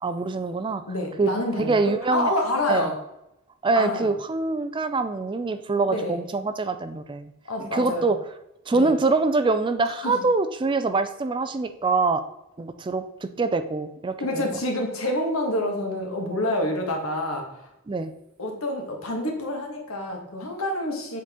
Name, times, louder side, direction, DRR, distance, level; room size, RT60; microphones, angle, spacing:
voice 1, 0.0-0.8 1.2-1.3 1.6-2.3 2.7-2.9 3.6-7.3 7.7-8.2 8.7-12.2 12.6-14.5 17.9-18.1, right 3 dB, 25° right, 10 dB, 0.4 m, -24 dB
voice 2, 0.9-3.0 3.7-4.1 5.8-6.2 7.5-8.1 8.7-8.9 10.0-10.2 14.2-17.5 18.4-21.2, left 1 dB, 80° left, 2 dB, 1.6 m, -27 dB
7.5 x 4.1 x 3.6 m, 0.87 s
head